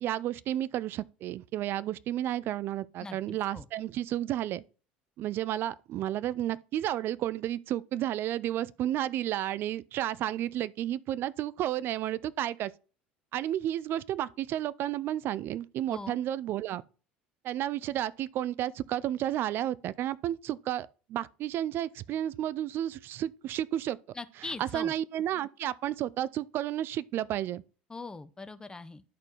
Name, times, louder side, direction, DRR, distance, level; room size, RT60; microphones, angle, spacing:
voice 1, 0.0-4.6 5.2-12.7 13.3-16.8 17.4-24.0 24.4-27.6, right 12 dB, 45° right, 0.4 m, -32 dB
voice 2, 3.0-3.6 15.9-16.2 24.2-24.9 27.9-29.0, left 3 dB, 15° left, 0.6 m, -41 dB
12.0 x 4.3 x 3.0 m
figure-of-eight pair, 70°, 5 cm